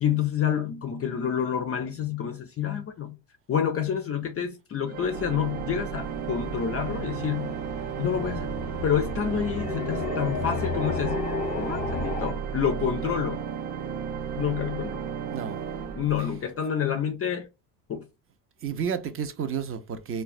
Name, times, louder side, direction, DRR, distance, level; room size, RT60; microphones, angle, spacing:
voice 1, 0.0-3.2 3.5-7.6 8.0-8.5 8.8-11.2 11.6-13.4 14.4-15.0 16.0-17.5 17.9-18.0, left 8 dB, 30° left, 0.4 m, -28 dB
Organ, 4.9-16.7, right 7 dB, 80° right, 0.8 m, -34 dB
sound 1, 5.2-12.3, left 3 dB, 15° left, 0.8 m, -34 dB
voice 2, 15.3-15.7 18.6-20.2, right 7 dB, 30° right, 0.4 m, -31 dB
3.8 x 2.1 x 2.4 m
supercardioid pair, 85°, 50 cm